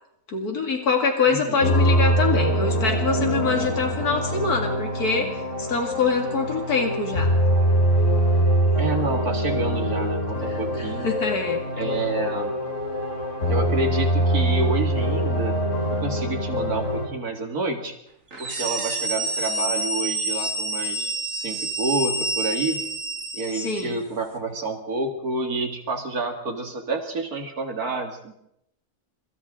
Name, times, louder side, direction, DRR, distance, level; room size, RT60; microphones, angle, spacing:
voice 1, 0.3-5.3 5.6-7.3 10.5-11.6 23.6-23.9, left 4 dB, 80° left, 2 dB, 2.8 m, -25 dB
voice 2, 1.3-1.7 8.8-11.1 11.8-12.5 13.5-15.6 15.9-17.9 18.4-22.8 23.3-28.3, right 2 dB, 75° right, 3 dB, 2.6 m, -29 dB
sound 1, 1.6-17.1, right 1 dB, 50° left, 3.6 m, -23 dB
sound 2, 18.3-24.0, right 2 dB, 60° right, 3.0 m, -28 dB
26.5 x 26.0 x 3.8 m, 0.78 s
omnidirectional pair, 1.6 m